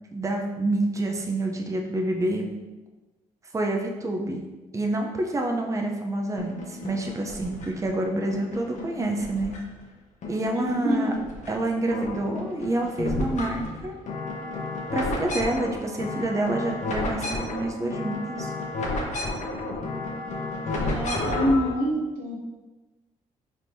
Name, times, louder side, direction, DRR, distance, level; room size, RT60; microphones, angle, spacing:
voice 1, 0.1-2.5 3.5-4.4 4.7-9.5 10.3-11.1 11.5-13.9 14.9-18.5, right 2 dB, 20° right, 2 dB, 0.6 m, -28 dB
sound 1, 6.4-7.9 8.3-9.9 10.2-11.5 11.8-21.7, left 2 dB, 55° left, 0.9 m, -32 dB
voice 2, 10.6-11.2 20.7-22.4, equal, 80° right, -1 dB, 0.8 m, -26 dB
4.3 x 3.4 x 2.7 m, 1.1 s
supercardioid pair, 65°, 14 cm